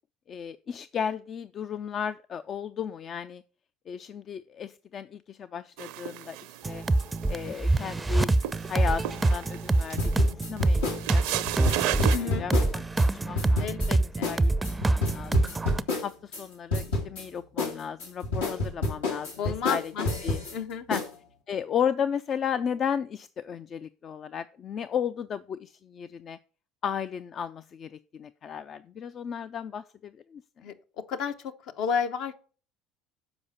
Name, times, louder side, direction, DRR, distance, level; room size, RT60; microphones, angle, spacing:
voice 1, 0.3-3.4 3.9-6.8 7.3-8.3 8.7-10.8 11.1-12.1 12.4-12.8 13.1-13.7 14.2-14.5 14.8-15.5 16.0-19.9 20.2-20.4 20.9-21.0 21.5-26.4 26.8-30.4, left 7 dB, 45° left, 0.4 m, -34 dB
sound 1, 5.8-12.2, right 13 dB, 70° right, 0.5 m, -35 dB
sound 2, 6.6-15.8, right 2 dB, 15° right, 0.5 m, -25 dB
sound 3, 10.0-13.1 13.3-13.9 14.2-14.4 14.6-16.4 16.7-17.2 17.6-20.5 20.9-21.1, left 2 dB, 85° left, 1.9 m, -29 dB
voice 2, 12.1-12.5 13.6-14.3 19.4-20.1 20.5-20.9 30.6-30.8 31.1-32.4, left 7 dB, 65° left, 0.9 m, -31 dB
7.0 x 4.9 x 5.5 m
hypercardioid pair, 70°, 0 cm